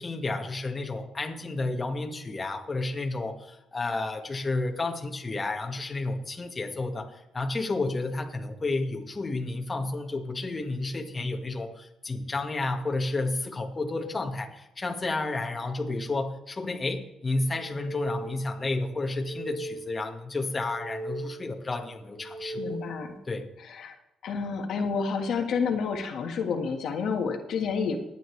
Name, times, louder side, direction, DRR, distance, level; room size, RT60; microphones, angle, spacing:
voice 1, 0.0-22.8 23.3-23.5, left 2 dB, 25° left, 3 dB, 1.7 m, -31 dB
sound 1, 17.5-18.7 19.0-20.2 20.5-21.7 22.1-23.2, right 2 dB, 25° right, 2.8 m, -39 dB
voice 2, 22.6-23.2 23.6-24.0 24.2-28.0, left 5 dB, 70° left, 3 dB, 1.6 m, -29 dB
21.0 x 9.1 x 3.3 m, 0.88 s
cardioid pair, 90°, 0 cm